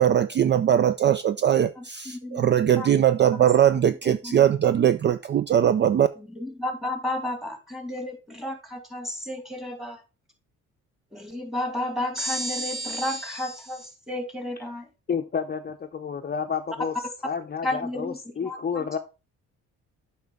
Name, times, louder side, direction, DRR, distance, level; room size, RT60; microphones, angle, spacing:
voice 1, 0.0-6.1, right 10 dB, 40° right, 0.4 m, -20 dB
voice 2, 1.8-2.5 2.8-2.9 3.3-3.4 4.1-4.5 6.2-10.0 11.1-14.9 17.6-18.9, left 1 dB, ahead, 2.1 m, -32 dB
voice 3, 15.1-16.9 17.2-19.0, left 6 dB, 30° left, 0.7 m, -30 dB
7.8 x 5.6 x 3.6 m
cardioid pair, 90°, 30 cm